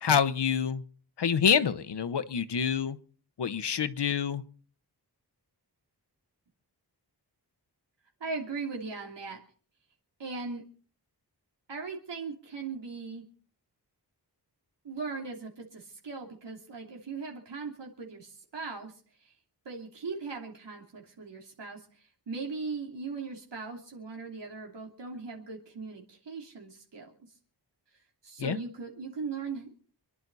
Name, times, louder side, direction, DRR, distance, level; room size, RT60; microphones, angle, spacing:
voice 1, 0.0-0.8 1.2-3.0 3.4-4.4 28.4-28.6, left 7 dB, 75° left, 1.0 m, -27 dB
voice 2, 8.2-9.4 10.2-10.6 11.7-13.2 14.8-18.9 19.2-19.3 19.6-27.1 28.2-29.7, right 4 dB, 90° right, 3.1 m, -39 dB
26.0 x 11.0 x 4.1 m
wide cardioid pair, 120°, 41 cm